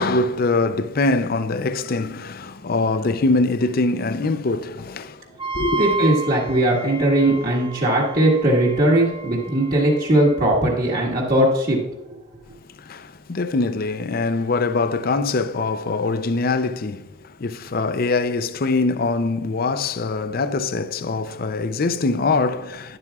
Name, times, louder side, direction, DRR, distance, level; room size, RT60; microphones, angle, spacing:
voice 1, 0.0-5.2 5.5-5.8 12.8-23.0, left 3 dB, 45° left, 0.5 m, -23 dB
Wind instrument woodwind instrument, 5.4-10.4, right 3 dB, 25° right, 0.9 m, -32 dB
voice 2, 5.7-11.8, right 1 dB, 45° right, 1.8 m, -19 dB
12.0 x 11.0 x 2.4 m
head